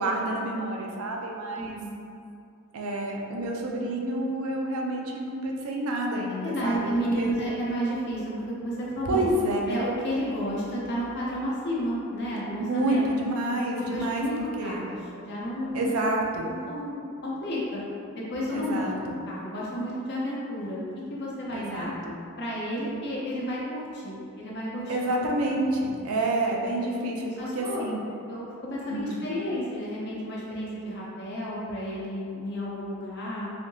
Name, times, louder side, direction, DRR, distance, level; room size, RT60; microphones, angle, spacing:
voice 1, 0.0-1.8 2.7-6.9 7.1-7.3 9.1-9.8 12.7-14.2 14.6-14.8 15.7-16.5 18.5-19.2 21.5-22.2 24.9-28.0 28.9-29.2, right 1 dB, 75° right, 0 dB, 0.5 m, -28 dB
voice 2, 1.5-2.0 3.3-3.5 6.4-9.2 9.7-13.1 13.8-15.0 15.2-16.1 16.4-17.8 18.1-20.8 21.1-21.9 22.4-25.1 27.2-27.8 28.3-33.5, equal, 50° left, -6 dB, 0.7 m, -32 dB
3.4 x 2.8 x 2.7 m, 2.6 s
head